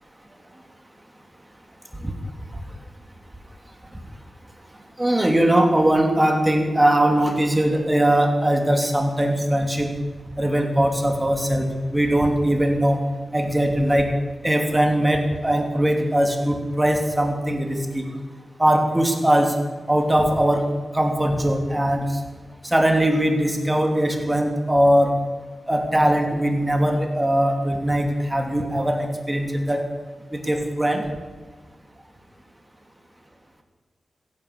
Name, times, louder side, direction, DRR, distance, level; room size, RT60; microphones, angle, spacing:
voice 1, 5.0-9.9 10.4-13.0 13.3-14.1 14.4-18.0 18.6-19.5 19.9-20.6 20.9-22.2 22.6-25.1 25.7-29.8 30.3-31.0, right 1 dB, 15° right, 4 dB, 2.9 m, -20 dB
15.0 x 10.5 x 8.7 m, 1.4 s
cardioid pair, 65°, 0 cm